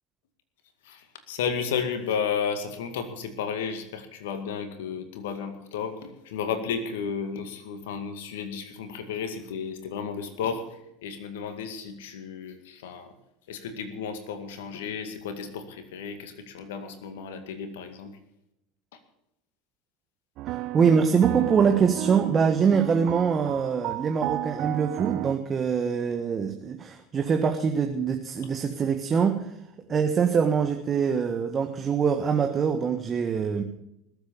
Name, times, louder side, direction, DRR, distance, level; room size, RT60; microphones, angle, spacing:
voice 1, 0.8-13.1 13.5-18.2 18.9-19.0, left 6 dB, 75° left, 9 dB, 2.1 m, -33 dB
voice 2, 20.4-29.6 29.9-33.6, right 6 dB, 30° right, 6 dB, 1.5 m, -24 dB
sound 1, 20.4-25.3, right 14 dB, 55° right, 0.8 m, -33 dB
20.0 x 8.0 x 7.0 m, 0.83 s
hypercardioid pair, 85°, 0 cm